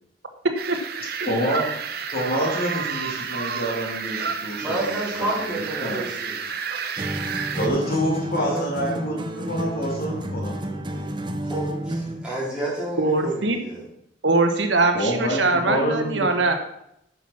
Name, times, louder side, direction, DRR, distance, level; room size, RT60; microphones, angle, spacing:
sound 1, 0.6-7.7, right 6 dB, 55° right, 0.9 m, -31 dB
voice 1, 1.2-1.6 2.1-6.0 7.6-11.1 14.9-16.3, equal, 50° left, -2 dB, 3.0 m, -27 dB
voice 2, 4.6-6.4 8.3-8.7 11.4-13.8, right 1 dB, 5° right, -6 dB, 3.8 m, -30 dB
sound 2, 7.0-12.3, right 1 dB, 25° right, 0.7 m, -30 dB
voice 3, 13.0-13.6 14.2-16.5, right 3 dB, 75° right, 6 dB, 1.3 m, -21 dB
9.1 x 5.9 x 6.2 m, 0.76 s
head